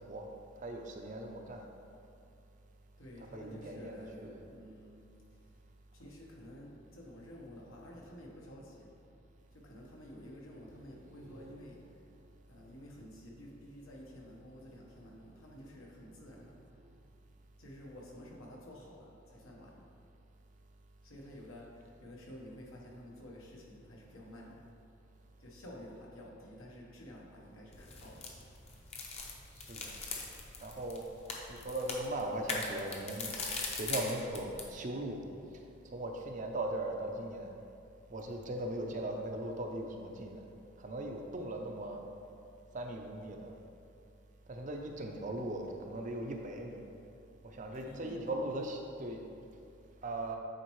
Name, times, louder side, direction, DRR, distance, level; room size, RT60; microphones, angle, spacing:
voice 1, 0.6-1.7 3.3-4.4 11.1-11.7 29.6-29.9 30.6-31.1 31.5-33.3 33.6-35.2 35.9-37.5 38.1-40.4 40.8-42.0 42.7-43.5 44.5-46.8 47.4-49.2 50.0-50.4, right 1 dB, 40° right, 2 dB, 0.5 m, -39 dB
voice 2, 3.0-5.5 5.9-8.9 9.5-11.8 12.5-16.6 17.6-19.8 21.0-24.6 25.4-28.3 47.7-48.4, left 1 dB, 85° left, -2 dB, 1.2 m, -51 dB
sound 1, 27.7-34.7, left 3 dB, 30° left, 0.7 m, -41 dB
9.0 x 4.3 x 3.1 m, 2.5 s
head